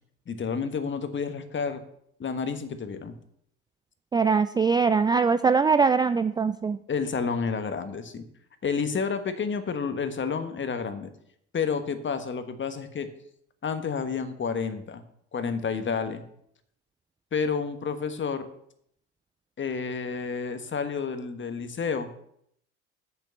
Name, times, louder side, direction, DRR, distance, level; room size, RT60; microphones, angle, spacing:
voice 1, 0.3-1.8 2.2-3.2 6.9-8.2 8.6-11.1 11.5-13.1 13.6-15.0 15.3-16.2 17.3-18.5 19.6-22.1, left 5 dB, 30° left, 9 dB, 1.5 m, -30 dB
voice 2, 4.1-6.8, right 5 dB, 10° right, 12 dB, 0.3 m, -22 dB
8.0 x 7.0 x 6.9 m, 0.71 s
hypercardioid pair, 60°, 36 cm